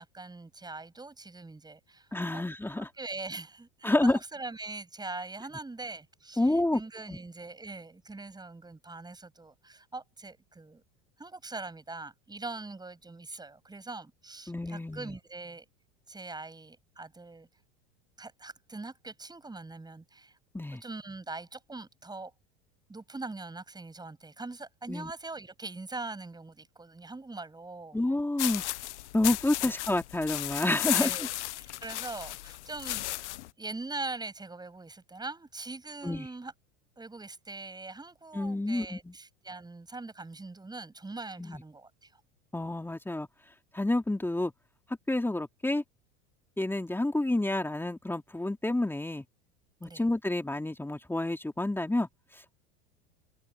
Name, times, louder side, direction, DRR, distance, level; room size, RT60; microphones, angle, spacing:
voice 1, 0.0-2.4 2.8-10.8 11.2-15.6 16.1-17.5 18.2-20.4 20.8-22.3 22.9-28.0 29.6-29.7 30.7-31.3 31.6-33.1 33.6-36.5 37.0-42.1 49.8-50.0, right 3 dB, 10° right, 7.9 m, -42 dB
voice 2, 2.1-2.9 3.8-4.2 6.4-6.8 7.1-7.2 14.5-15.2 20.5-20.8 24.9-25.1 27.9-28.6 29.1-31.3 36.0-36.3 38.3-39.1 41.4-41.6 42.5-43.3 43.7-44.5 45.1-45.8 46.6-49.2 49.8-52.6, left 2 dB, 5° left, 3.4 m, -29 dB
sound 1, 28.4-33.5, left 16 dB, 80° left, 1.0 m, -34 dB
open air
hypercardioid pair, 95°, 34 cm